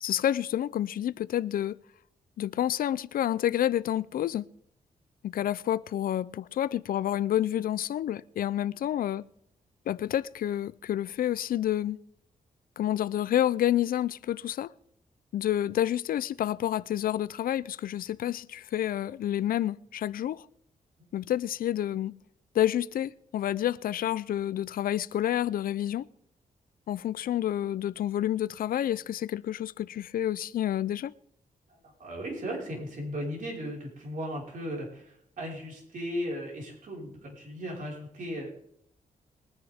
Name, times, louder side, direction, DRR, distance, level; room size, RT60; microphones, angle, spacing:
voice 1, 0.0-1.8 2.4-4.5 5.2-9.2 9.9-12.0 12.8-14.7 15.3-20.5 21.1-22.1 22.5-26.1 26.9-31.1, left 11 dB, 75° left, 0.5 m, -29 dB
voice 2, 31.8-38.5, equal, 65° right, 5.1 m, -36 dB
21.5 x 10.5 x 3.6 m
cardioid pair, 95°, 15 cm